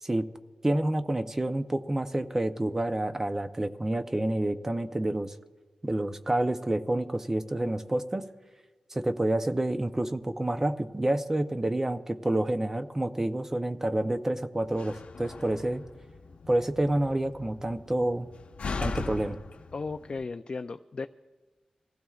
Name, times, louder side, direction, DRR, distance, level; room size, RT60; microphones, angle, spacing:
voice 1, 0.6-5.3 5.8-8.2 8.9-15.8 16.5-18.3 18.8-19.4, right 1 dB, 20° right, 9 dB, 0.6 m, -28 dB
Slam, 14.6-20.2, left 4 dB, 75° left, 0.9 m, -40 dB
voice 2, 19.7-21.1, left 4 dB, 45° left, 7 dB, 0.4 m, -35 dB
25.5 x 15.5 x 2.4 m, 1.3 s
wide cardioid pair, 150°, 2 cm